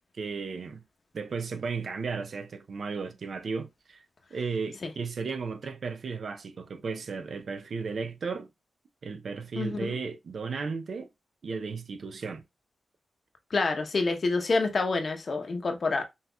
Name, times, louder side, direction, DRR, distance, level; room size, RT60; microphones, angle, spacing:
voice 1, 0.2-0.8 1.1-4.0 4.3-8.5 9.0-11.1 11.4-12.4, right 5 dB, 65° right, 0.6 m, -34 dB
voice 2, 9.6-9.9 13.5-16.0, left 3 dB, 55° left, 0.9 m, -27 dB
5.5 x 2.9 x 2.3 m
cardioid pair, 50°, 0 cm